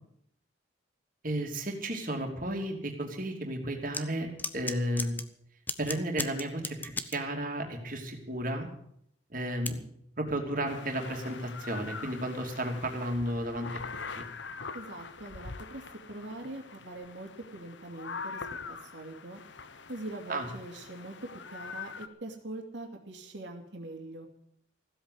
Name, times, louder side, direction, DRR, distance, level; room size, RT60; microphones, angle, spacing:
voice 1, 1.2-5.1 5.8-8.7 9.3-9.8 10.2-13.7 14.2-14.3 20.3-20.5, right 1 dB, 45° right, 3 dB, 2.9 m, -33 dB
sound 1, 3.9-4.0 4.4-5.2 5.7-7.2 9.7-9.8, left 3 dB, 10° left, 0.7 m, -34 dB
sound 2, 10.7-22.1, left 5 dB, 70° left, 1.0 m, -43 dB
voice 2, 14.7-15.8 16.1-18.4 18.7-19.4 19.9-21.2 21.5-24.3, right 2 dB, 65° right, 1 dB, 2.7 m, -43 dB
16.0 x 8.1 x 9.9 m, 0.71 s
head